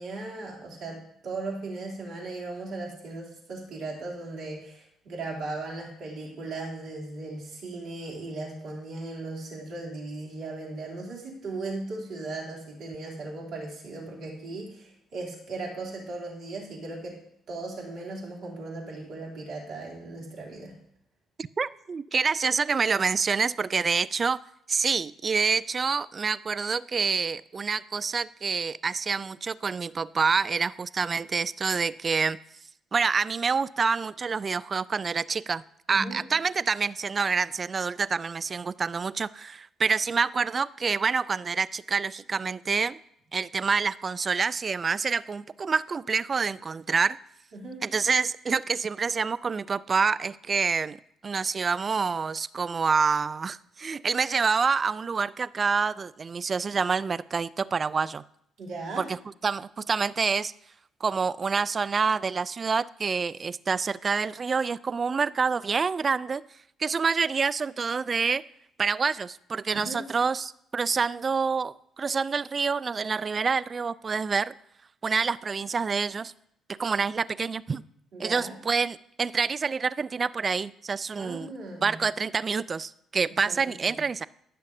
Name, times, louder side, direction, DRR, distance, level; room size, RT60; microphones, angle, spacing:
voice 1, 0.0-17.2 17.5-20.7 35.9-36.2 47.5-47.8 58.6-59.1 69.7-70.0 78.1-78.5 81.1-82.0 83.5-84.0, right 3 dB, 65° right, -2 dB, 2.8 m, -37 dB
voice 2, 21.4-24.4 24.7-32.4 32.9-35.6 35.9-43.0 43.3-47.2 47.8-51.0 51.2-58.2 59.0-59.2 59.4-60.5 61.0-66.4 66.8-68.4 68.8-74.5 75.0-76.3 76.8-77.8 78.2-81.5 81.8-84.3, right 5 dB, 40° right, 18 dB, 0.3 m, -27 dB
14.5 x 6.4 x 2.7 m, 0.74 s
hypercardioid pair, 50°, 0 cm